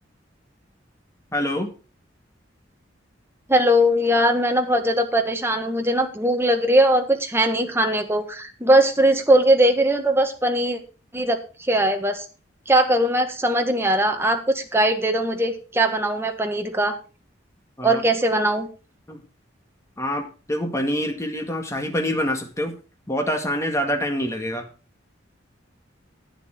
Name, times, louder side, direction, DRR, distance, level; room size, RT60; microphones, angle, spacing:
voice 1, 1.3-1.7 17.8-18.0 19.1-19.2 20.0-22.7 23.1-24.7, equal, 15° left, 4 dB, 1.9 m, -26 dB
voice 2, 3.5-10.8 11.1-11.4 11.7-12.2 12.7-16.9 17.8-18.7, right 1 dB, 15° right, 5 dB, 1.6 m, -20 dB
11.0 x 9.2 x 4.4 m, 0.34 s
head